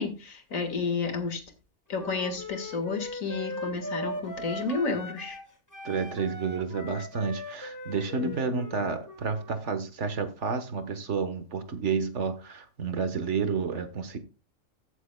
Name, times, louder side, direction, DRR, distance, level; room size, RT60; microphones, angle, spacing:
voice 1, 0.0-1.4 1.9-5.4 8.2-8.4, left 4 dB, 85° left, 2.2 m, -31 dB
Wind instrument woodwind instrument, 1.9-5.5 5.7-9.6, left 1 dB, 15° left, 1.2 m, -39 dB
voice 2, 5.8-14.2, right 5 dB, 60° right, 1.5 m, -30 dB
15.0 x 8.2 x 2.2 m
omnidirectional pair, 1.4 m